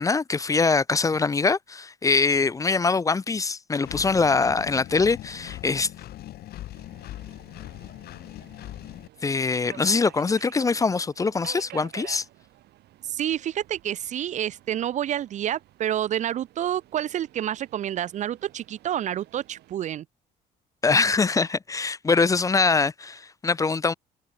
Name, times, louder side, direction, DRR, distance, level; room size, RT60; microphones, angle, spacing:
voice 1, 0.0-5.9 9.2-12.2 20.8-23.9, left 4 dB, 20° left, 0.5 m, -23 dB
Engine, 3.8-9.1, left 14 dB, 65° left, 1.3 m, -40 dB
Subway metro underground, 6.7-19.8, right 15 dB, 75° right, 7.5 m, -50 dB
voice 2, 13.1-20.0, right 11 dB, 45° right, 0.4 m, -28 dB
cardioid pair, 110°, 17 cm